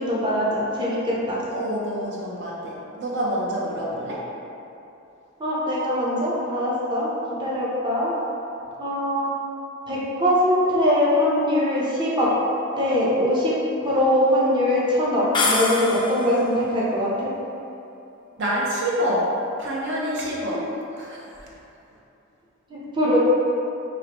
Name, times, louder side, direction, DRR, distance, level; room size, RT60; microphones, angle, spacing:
voice 1, 0.0-1.4 5.4-7.1 7.4-8.1 8.8-9.3 9.9-12.3 12.8-13.5 13.8-17.3 20.5-20.6 22.7-23.2, left 1 dB, 25° right, -7 dB, 0.7 m, -22 dB
voice 2, 1.5-4.2 18.3-20.7 20.9-21.5, equal, 60° right, -5 dB, 0.6 m, -27 dB
sound 1, 15.3-16.4, left 3 dB, 20° left, 0.4 m, -24 dB
4.7 x 3.0 x 2.9 m, 2.8 s
head